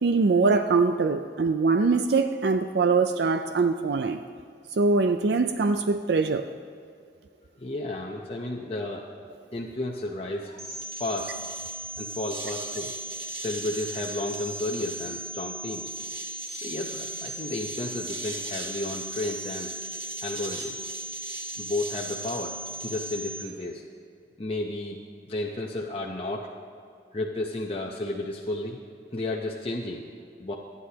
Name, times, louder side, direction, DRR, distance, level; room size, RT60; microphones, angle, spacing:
voice 1, 0.0-4.2 4.8-6.5, right 4 dB, 70° right, 8 dB, 0.4 m, -23 dB
voice 2, 7.6-9.0 9.5-10.7 11.0-11.3 12.0-12.9 13.4-15.9 16.6-19.7 20.2-20.9 21.6-22.5 22.8-23.8 24.4-25.0 25.3-26.5 27.1-28.8 29.1-30.0 30.4-30.5, left 2 dB, 30° left, -1 dB, 0.8 m, -32 dB
sound 1, 10.6-23.4, right 1 dB, 55° right, 2.5 m, -36 dB
25.5 x 9.7 x 2.9 m, 2.3 s
head